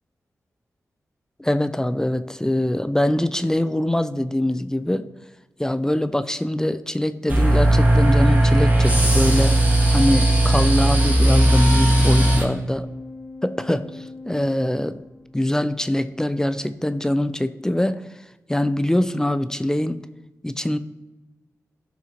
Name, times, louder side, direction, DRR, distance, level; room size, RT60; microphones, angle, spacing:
voice 1, 1.4-5.1 5.6-9.6 9.9-12.9 13.4-15.0 15.3-18.0 18.5-20.1 20.4-20.8, left 1 dB, 10° left, 12 dB, 0.4 m, -23 dB
sound 1, 7.3-12.4, right 1 dB, 30° right, 2.3 m, -17 dB
Organ, 8.9-15.5, left 3 dB, 75° left, 2.7 m, -40 dB
14.5 x 5.9 x 2.9 m, 1.1 s
cardioid pair, 70°, 6 cm